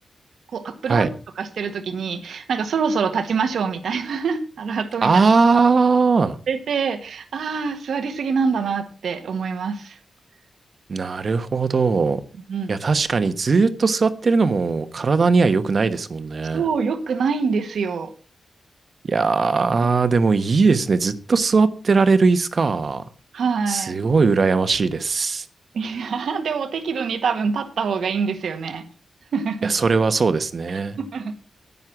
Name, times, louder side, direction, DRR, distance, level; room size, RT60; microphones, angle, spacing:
voice 1, 0.5-1.1 1.4-5.1 6.5-10.0 12.5-12.8 16.5-18.1 23.3-24.0 25.7-28.8 29.3-29.7 31.0-31.4, right 5 dB, 85° right, 9 dB, 1.6 m, -25 dB
voice 2, 5.0-6.4 10.9-12.2 12.7-16.6 19.1-23.0 23.7-25.5 29.6-31.0, right 4 dB, 50° right, 12 dB, 1.1 m, -19 dB
11.0 x 9.5 x 5.9 m, 0.38 s
wide cardioid pair, 95°, 0 cm